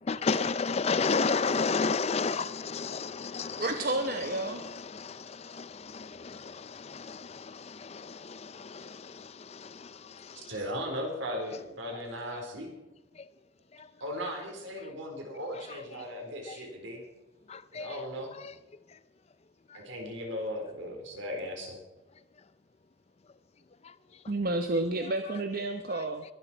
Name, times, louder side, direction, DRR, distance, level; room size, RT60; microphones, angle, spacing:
voice 1, 0.0-10.6 12.4-12.5 13.1-13.3 13.7-13.9 15.5-16.0 16.4-16.7 17.5-18.0 18.3-18.5 18.9-19.0 19.7-19.8 23.8-24.0 25.9-26.1, left 4 dB, 30° left, 0.4 m, -33 dB
voice 2, 3.6-4.6 24.3-26.2, right 2 dB, 45° right, 0.9 m, -30 dB
voice 3, 10.5-12.7 14.0-17.0 17.7-18.3 19.7-21.8, equal, 70° right, 4.4 m, -37 dB
22.0 x 12.0 x 4.5 m
head